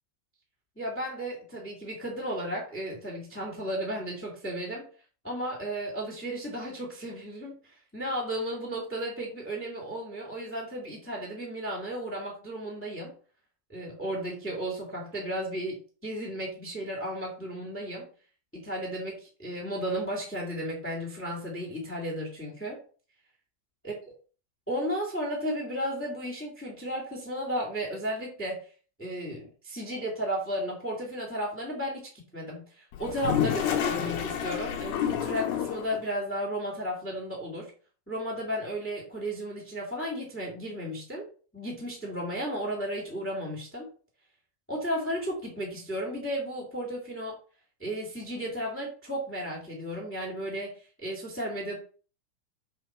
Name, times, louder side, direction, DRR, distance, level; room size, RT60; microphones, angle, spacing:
voice 1, 0.7-4.9 5.2-13.1 13.7-18.1 18.5-22.8 23.8-23.9 24.7-28.6 29.0-37.7 38.1-41.3 41.5-43.9 44.7-47.4 47.8-50.7 51.0-51.8, equal, 5° left, -3 dB, 1.2 m, -34 dB
Toilet flush, 32.9-36.0, left 9 dB, 70° left, 1.9 m, -29 dB
7.7 x 3.9 x 4.5 m, 0.39 s
omnidirectional pair, 4.3 m